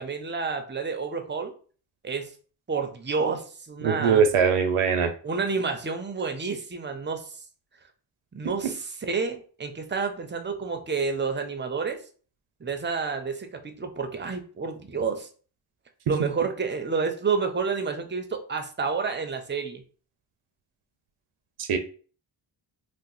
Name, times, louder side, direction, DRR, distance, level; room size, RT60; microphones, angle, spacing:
voice 1, 0.0-1.5 2.0-2.3 2.7-4.2 5.2-7.3 8.3-12.0 12.6-15.3 16.1-19.8, right 5 dB, 25° right, 6 dB, 0.5 m, -29 dB
voice 2, 3.8-5.1 8.6-8.7 21.6-21.8, right 6 dB, 85° right, 7 dB, 0.6 m, -21 dB
2.8 x 2.0 x 3.9 m, 0.40 s
wide cardioid pair, 90°, 50 cm